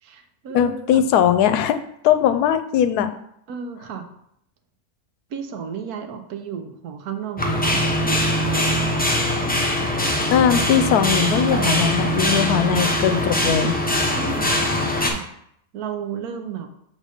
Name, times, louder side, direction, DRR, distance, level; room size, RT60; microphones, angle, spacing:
voice 1, 0.0-1.0 3.5-4.1 5.3-9.0 12.6-13.5 14.2-14.5 15.0-15.3 15.7-16.7, right 7 dB, 80° right, 6 dB, 1.3 m, -33 dB
voice 2, 0.5-3.1 10.3-13.7, left 9 dB, 85° left, 10 dB, 1.1 m, -20 dB
sound 1, 7.4-15.1, equal, 10° left, 0.5 m, -22 dB
6.6 x 3.9 x 5.0 m, 0.73 s
omnidirectional pair, 1.6 m